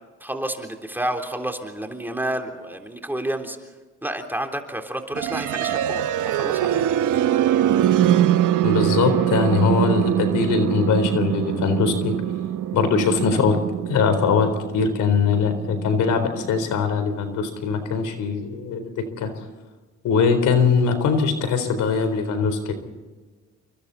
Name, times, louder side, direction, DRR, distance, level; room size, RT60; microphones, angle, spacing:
voice 1, 0.2-3.6 4.0-6.8, right 1 dB, 5° right, 4 dB, 3.5 m, -30 dB
sound 1, 5.1-17.0, right 11 dB, 80° right, 1.2 m, -23 dB
voice 2, 8.6-12.2 12.7-13.6 13.9-19.3 20.0-22.7, left 5 dB, 85° left, 9 dB, 4.1 m, -21 dB
29.0 x 24.5 x 4.2 m, 1.3 s
cardioid pair, 90°, 30 cm